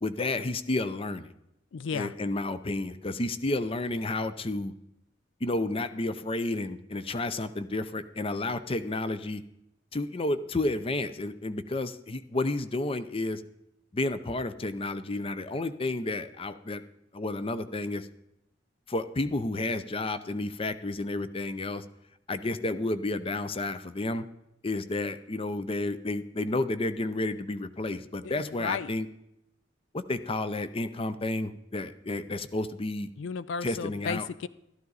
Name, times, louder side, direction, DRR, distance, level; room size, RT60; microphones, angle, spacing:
voice 1, 0.0-1.3 1.9-4.7 5.4-9.4 9.9-13.4 13.9-16.8 17.1-18.1 18.9-21.8 22.3-24.2 24.6-29.1 29.9-33.1 33.6-34.3, left 2 dB, 30° left, 12 dB, 0.6 m, -31 dB
voice 2, 1.7-2.1 28.4-28.9 33.2-34.5, left 5 dB, 80° left, 16 dB, 0.4 m, -34 dB
12.5 x 12.5 x 4.0 m, 0.83 s
head